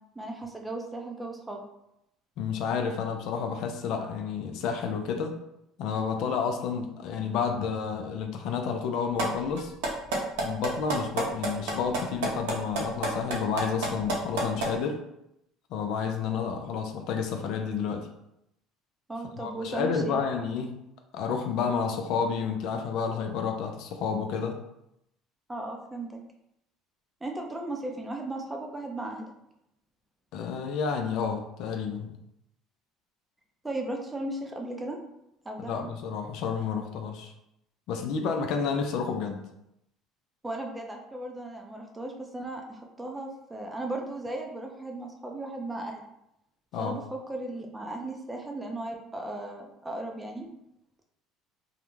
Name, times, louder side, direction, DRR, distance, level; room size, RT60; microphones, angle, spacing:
voice 1, 0.2-1.6 19.1-20.2 25.5-26.2 27.2-29.3 33.6-35.0 35.5-35.9 40.4-46.1 46.8-50.5, right 2 dB, 15° right, 2 dB, 0.5 m, -36 dB
voice 2, 2.4-5.4 5.8-9.7 10.4-15.0 15.7-18.1 19.4-20.8 21.1-24.6 30.3-32.2 35.7-37.3 37.9-39.5 46.7-47.0, left 6 dB, 65° left, 4 dB, 0.3 m, -30 dB
sound 1, 9.2-9.3 9.6-14.7, right 3 dB, 85° right, 0.6 m, -28 dB
2.3 x 2.1 x 3.0 m, 0.81 s
supercardioid pair, 85°, 0 cm